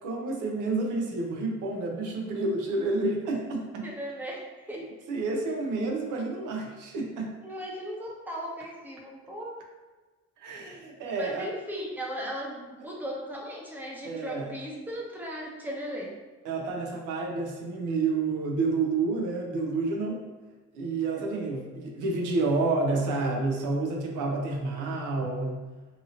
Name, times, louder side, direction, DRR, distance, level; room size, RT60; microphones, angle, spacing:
voice 1, 0.0-3.9 4.7-7.3 10.4-11.5 14.0-14.5 16.4-20.2 20.7-25.7, right 3 dB, 90° right, 0 dB, 0.6 m, -29 dB
voice 2, 3.8-4.9 7.4-9.6 11.2-16.1 21.1-21.7, equal, 5° right, -2 dB, 0.6 m, -37 dB
2.7 x 2.7 x 2.7 m, 1.3 s
cardioid pair, 90°, 30 cm